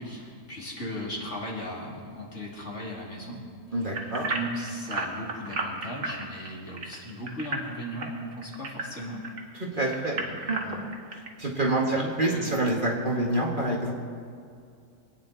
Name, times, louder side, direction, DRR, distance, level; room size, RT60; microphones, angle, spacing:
voice 1, 0.0-3.4 4.2-9.2 10.1-10.9 11.9-12.5, equal, 50° left, -3 dB, 2.9 m, -37 dB
voice 2, 3.7-4.2 9.6-10.2 10.5-10.9 11.4-13.9, right 2 dB, 35° right, -2 dB, 1.8 m, -27 dB
sound 1, 3.9-9.4 9.9-11.3 11.8-11.9 12.4-12.5, right 3 dB, 55° right, 1.8 m, -33 dB
25.5 x 9.6 x 4.1 m, 2.4 s
omnidirectional pair, 1.6 m